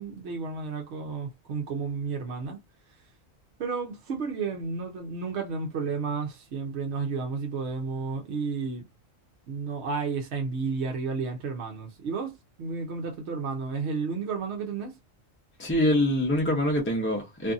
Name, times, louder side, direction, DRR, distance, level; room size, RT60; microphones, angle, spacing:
voice 1, 0.0-2.6 3.6-8.8 9.5-14.9, right 5 dB, 65° right, 0.8 m, -32 dB
voice 2, 15.6-17.5, left 1 dB, 15° left, 0.4 m, -24 dB
2.6 x 2.5 x 2.5 m
omnidirectional pair, 1.4 m